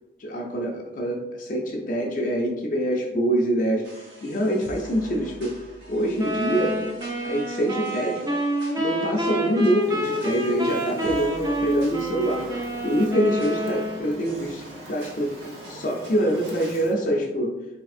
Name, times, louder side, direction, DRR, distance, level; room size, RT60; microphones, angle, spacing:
voice 1, 0.2-3.9 4.2-5.6 5.9-6.8 7.2-8.2 8.8-12.4 12.8-15.4 15.7-17.6, equal, 45° left, 0 dB, 0.4 m, -25 dB
sound 1, 3.8-16.9, equal, 85° right, 1.0 m, -46 dB
sound 2, 6.2-14.2, equal, 20° right, 0.4 m, -28 dB
Fire, 9.8-16.9, right 1 dB, 65° right, 0.6 m, -44 dB
3.4 x 2.8 x 2.4 m, 1.0 s
head